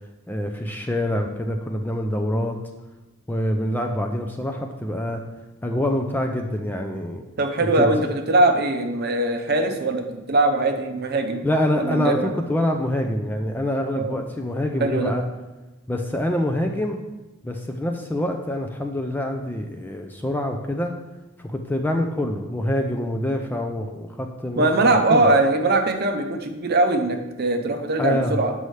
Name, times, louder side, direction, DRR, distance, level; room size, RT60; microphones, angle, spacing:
voice 1, 0.3-2.6 3.3-5.2 5.6-7.2 7.8-8.2 11.4-15.2 15.9-17.0 17.4-20.9 21.4-25.3 28.0-28.4, left 1 dB, 10° left, 4 dB, 0.3 m, -25 dB
voice 2, 7.4-11.5 11.8-12.3 14.0-14.2 14.8-15.1 24.6-28.5, right 2 dB, 45° right, 6 dB, 0.6 m, -21 dB
7.8 x 5.4 x 3.2 m, 1.1 s
head